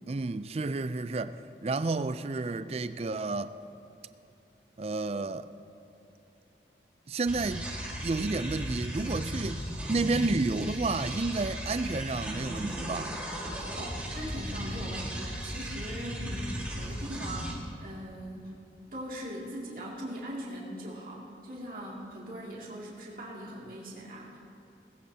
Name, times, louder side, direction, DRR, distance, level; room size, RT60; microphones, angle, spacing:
voice 1, 0.1-3.6 4.8-5.5 7.1-7.7 8.0-13.1, right 3 dB, 35° right, 0.4 m, -31 dB
sound 1, 7.3-17.5, equal, 10° right, 1.8 m, -36 dB
voice 2, 13.7-18.5 18.9-24.4, equal, 50° right, 2.5 m, -40 dB
20.0 x 15.5 x 2.8 m
head